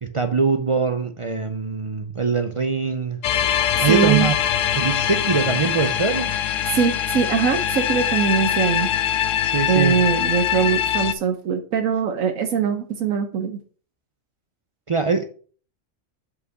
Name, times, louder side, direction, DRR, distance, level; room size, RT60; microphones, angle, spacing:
voice 1, 0.0-3.2 3.8-4.3 4.7-6.3 9.4-10.0 14.9-15.2, right 5 dB, 55° right, 0.3 m, -22 dB
sound 1, 3.2-11.1, left 10 dB, 70° left, 1.0 m, -23 dB
voice 2, 3.8-4.3 6.7-8.9 9.7-13.6, right 7 dB, 75° right, 1.2 m, -22 dB
5.5 x 4.9 x 6.2 m
omnidirectional pair, 1.5 m